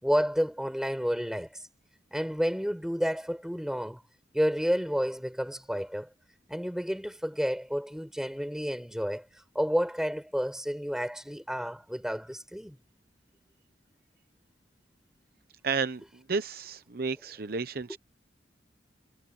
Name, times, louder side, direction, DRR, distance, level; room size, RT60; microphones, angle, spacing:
voice 1, 0.0-1.6 2.1-4.0 4.3-6.1 6.5-9.3 9.5-12.8, equal, 5° right, 5.0 m, -30 dB
voice 2, 15.6-18.0, right 5 dB, 55° right, 0.8 m, -32 dB
head